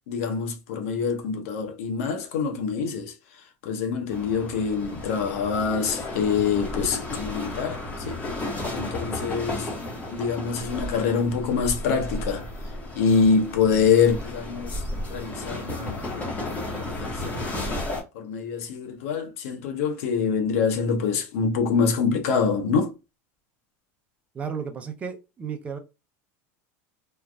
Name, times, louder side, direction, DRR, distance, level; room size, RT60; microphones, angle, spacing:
voice 1, 0.1-3.2 3.6-8.2 8.7-9.7 10.1-12.5 12.9-17.6 18.1-22.9, left 5 dB, 80° left, 0.8 m, -25 dB
sound 1, 4.1-18.0, left 1 dB, 20° left, 1.1 m, -33 dB
voice 2, 24.3-25.8, right 6 dB, 15° right, 0.5 m, -33 dB
3.2 x 2.4 x 2.2 m
supercardioid pair, 160°, 8 cm